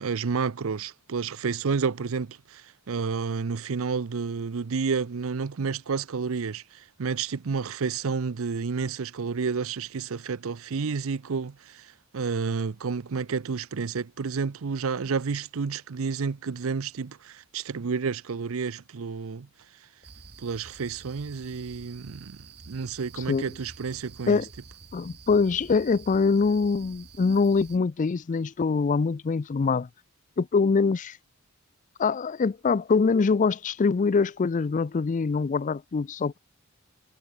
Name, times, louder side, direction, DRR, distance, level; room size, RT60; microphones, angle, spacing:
voice 1, 0.0-2.6 2.9-6.6 7.0-11.9 12.1-19.5 20.4-22.4 22.7-24.4, right 5 dB, 70° right, 0.6 m, -30 dB
sound 1, 20.0-27.8, right 4 dB, 50° right, 3.0 m, -49 dB
voice 2, 24.9-29.9 30.4-31.2 32.0-36.4, left 4 dB, 35° left, 0.4 m, -24 dB
head